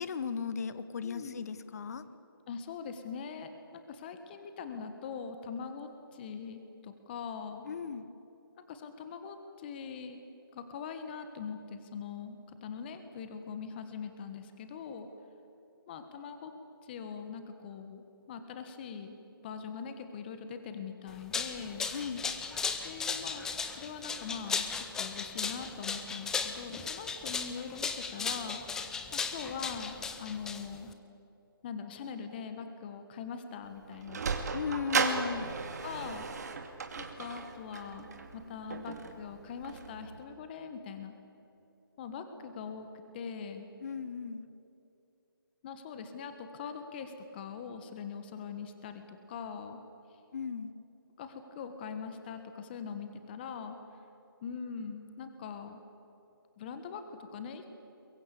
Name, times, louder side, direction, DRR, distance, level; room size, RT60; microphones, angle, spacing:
voice 1, 0.0-2.0 7.6-8.0 21.9-22.2 34.5-35.6 43.8-44.5 50.3-50.7, left 6 dB, 40° left, 13 dB, 1.3 m, -36 dB
voice 2, 1.0-1.4 2.5-7.7 8.7-10.2 10.5-15.1 15.9-16.5 16.8-19.2 19.4-21.9 22.8-23.5 23.8-28.6 29.1-30.9 31.6-34.2 35.4-35.5 35.8-36.3 37.0-41.1 42.0-42.9 43.1-43.7 45.6-49.8 51.2-53.8 54.4-55.8 56.6-57.7, left 6 dB, 25° left, 8 dB, 1.6 m, -42 dB
sound 1, 21.1-30.9, left 5 dB, 5° left, 0.6 m, -36 dB
Sliding door, 33.6-40.2, right 5 dB, 45° right, 2.4 m, -36 dB
23.0 x 22.5 x 8.6 m, 2.8 s
figure-of-eight pair, 155°, 12 cm